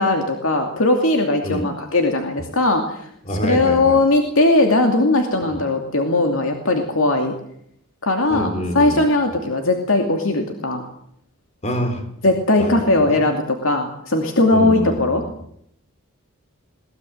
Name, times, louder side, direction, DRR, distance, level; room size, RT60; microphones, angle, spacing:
voice 1, 0.0-7.3 8.0-10.8 12.2-15.2, left 2 dB, 70° left, 3 dB, 2.7 m, -19 dB
voice 2, 3.2-4.0 5.5-5.6 8.3-9.0 11.6-12.1 12.6-13.2 14.5-15.2, equal, 30° left, 7 dB, 3.9 m, -26 dB
22.0 x 20.0 x 7.9 m, 0.71 s
head